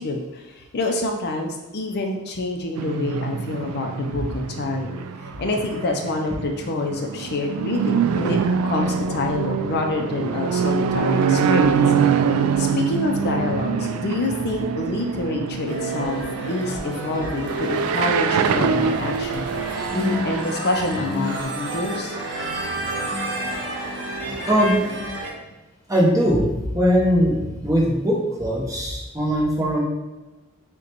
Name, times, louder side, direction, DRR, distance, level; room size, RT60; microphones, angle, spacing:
voice 1, 0.0-11.8 12.6-16.2 16.5-22.2, left 2 dB, 50° left, 3 dB, 0.4 m, -27 dB
sound 1, 2.8-20.4, right 6 dB, 80° right, 0.3 m, -24 dB
sound 2, 15.7-25.3, right 1 dB, 55° right, 0.9 m, -30 dB
voice 2, 24.5-24.8 25.9-29.8, equal, 15° right, -3 dB, 0.8 m, -20 dB
6.3 x 2.2 x 2.9 m, 1.1 s
head